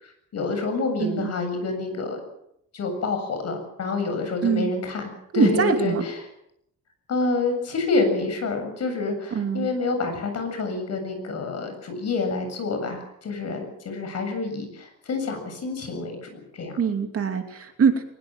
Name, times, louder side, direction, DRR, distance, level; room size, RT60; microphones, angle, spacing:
voice 1, 0.0-2.2 2.7-6.2 7.1-16.8, left 3 dB, 50° left, 6 dB, 7.6 m, -28 dB
voice 2, 5.3-6.0 9.3-9.7 16.8-18.0, right 6 dB, 45° right, 5 dB, 2.8 m, -23 dB
22.5 x 21.0 x 7.6 m, 0.77 s
cardioid pair, 170°, 33 cm